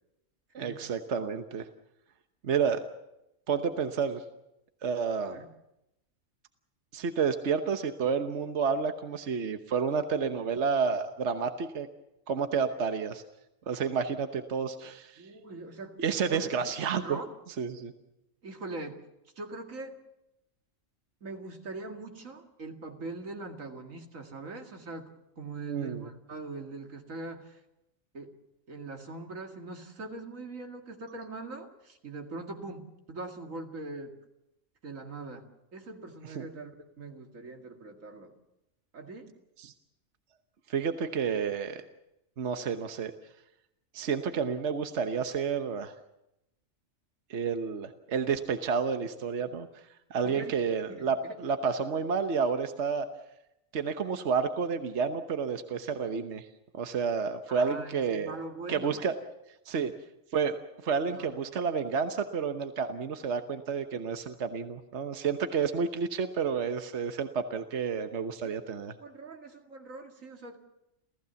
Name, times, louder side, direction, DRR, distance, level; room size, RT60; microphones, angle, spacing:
voice 1, 0.5-1.7 2.4-2.8 3.5-4.2 4.8-5.4 6.9-11.9 12.3-13.2 13.7-15.2 16.0-17.2 17.6-17.9 25.7-26.1 36.3-36.5 39.6-39.7 40.7-41.8 42.4-43.1 43.9-45.9 47.3-49.7 50.1-53.1 53.7-56.5 56.7-58.3 58.7-59.1 59.7-59.9 60.3-60.6 60.8-68.9, right 6 dB, 60° right, 7 dB, 1.4 m, -30 dB
voice 2, 15.2-16.0 16.3-16.6 16.9-17.3 18.4-19.0 19.4-20.0 21.2-25.1 25.4-27.6 28.1-28.3 28.7-34.1 34.8-36.7 37.0-38.3 38.9-39.3 50.2-50.6 50.9-51.4 57.5-59.0 61.1-61.4 68.4-70.6, right 3 dB, 90° right, 4 dB, 2.6 m, -42 dB
29.5 x 15.0 x 7.0 m, 0.88 s
omnidirectional pair, 1.3 m